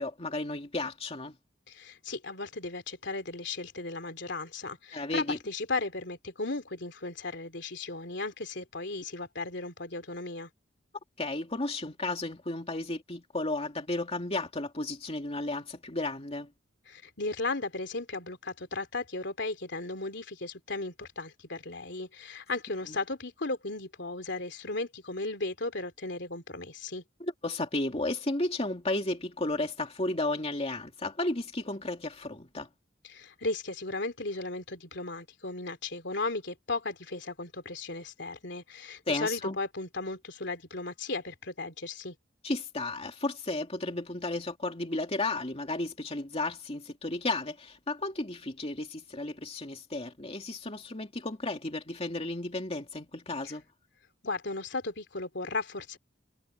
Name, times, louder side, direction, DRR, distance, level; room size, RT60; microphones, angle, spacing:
voice 1, 0.0-1.3 4.9-5.4 11.2-16.5 22.9-23.0 27.2-32.7 39.1-39.6 42.4-53.6, left 2 dB, 35° left, 2.5 m, -33 dB
voice 2, 1.7-10.5 16.9-27.0 33.0-42.2 53.4-53.5 54.2-56.0, left 3 dB, 70° left, 3.5 m, -36 dB
head